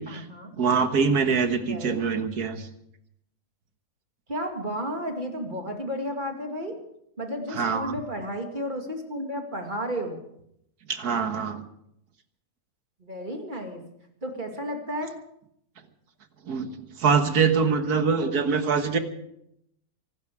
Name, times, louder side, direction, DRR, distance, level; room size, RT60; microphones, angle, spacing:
voice 1, 0.1-0.5 1.6-2.0 4.3-6.8 7.2-10.2 13.0-13.8 14.2-15.1, equal, 30° right, 3 dB, 2.5 m, -32 dB
voice 2, 0.6-2.7 7.5-7.9 10.9-11.6 16.5-19.0, right 5 dB, 75° right, 8 dB, 1.9 m, -24 dB
24.0 x 12.0 x 4.9 m, 0.75 s
omnidirectional pair, 1.6 m